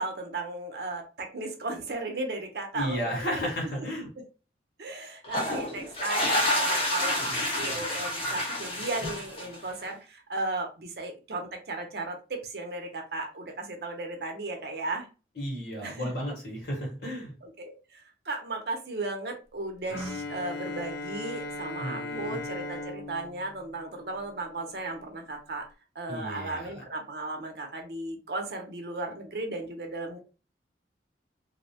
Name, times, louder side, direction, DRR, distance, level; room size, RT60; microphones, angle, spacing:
voice 1, 0.0-3.5 4.2-4.3 4.8-15.1 15.8-16.1 17.4-25.7 25.9-30.2, right 2 dB, 65° right, 3 dB, 0.7 m, -35 dB
voice 2, 2.7-4.1 15.4-17.3 21.8-22.4 26.1-26.8, equal, 65° left, -1 dB, 1.3 m, -33 dB
sound 1, 5.2-9.8, left 1 dB, 35° left, 0.8 m, -29 dB
Bowed string instrument, 19.9-24.7, left 2 dB, 85° left, 0.6 m, -38 dB
2.7 x 2.1 x 2.7 m, 0.33 s
head